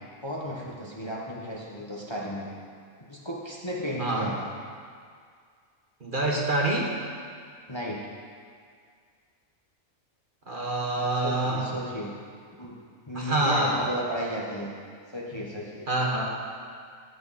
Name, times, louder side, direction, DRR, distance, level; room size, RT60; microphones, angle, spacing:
voice 1, 0.2-2.5 3.1-4.4 7.7-8.0 11.2-12.1 12.6-12.8 13.1-14.7 15.1-15.9, equal, 20° left, -4 dB, 1.3 m, -34 dB
voice 2, 4.0-4.3 6.0-6.9 10.5-11.7 13.1-13.8 15.9-16.2, right 2 dB, 40° right, -2 dB, 1.5 m, -26 dB
16.0 x 8.7 x 4.3 m, 2.1 s
omnidirectional pair, 1.4 m